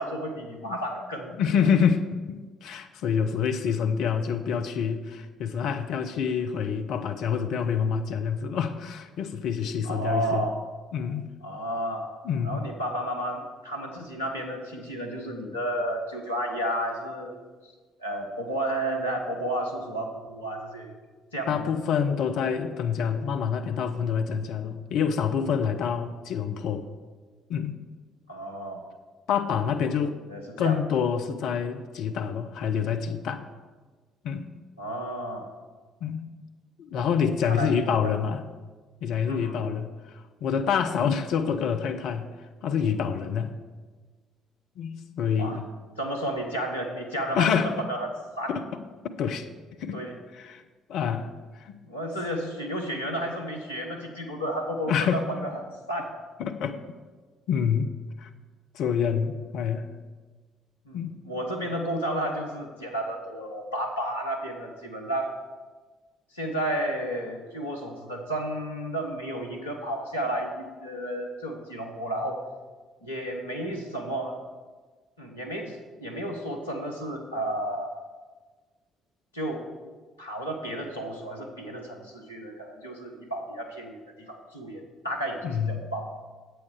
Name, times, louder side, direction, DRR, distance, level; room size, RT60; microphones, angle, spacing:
voice 1, 0.0-1.7 9.8-10.6 11.4-12.1 12.4-17.4 18.0-20.9 21.3-21.7 28.3-28.8 30.3-30.8 34.8-35.5 36.9-37.1 37.5-38.1 39.3-39.6 41.0-41.1 45.4-45.6 46.0-48.1 48.4-48.5 49.9-50.2 51.8-55.6 55.9-56.1 60.9-65.3 66.3-72.4 73.0-74.3 75.2-77.9 79.3-79.6 80.2-86.0, right 1 dB, 85° left, 0 dB, 1.2 m, -32 dB
voice 2, 1.4-10.5 10.9-11.3 12.2-12.6 21.5-26.9 27.5-27.8 29.3-30.2 30.6-33.4 34.2-34.5 36.0-36.3 36.8-38.4 39.0-42.3 42.6-43.5 44.8-45.6 47.3-47.7 48.5-49.5 49.8-50.0 50.3-50.6 50.9-51.3 51.5-51.7 54.9-55.3 56.4-56.8 57.5-57.9 58.2-58.3 58.7-59.9 60.9-61.2 85.4-85.9, left 7 dB, 60° left, 7 dB, 0.6 m, -27 dB
9.9 x 8.3 x 4.8 m, 1.4 s
figure-of-eight pair, 50°, 0 cm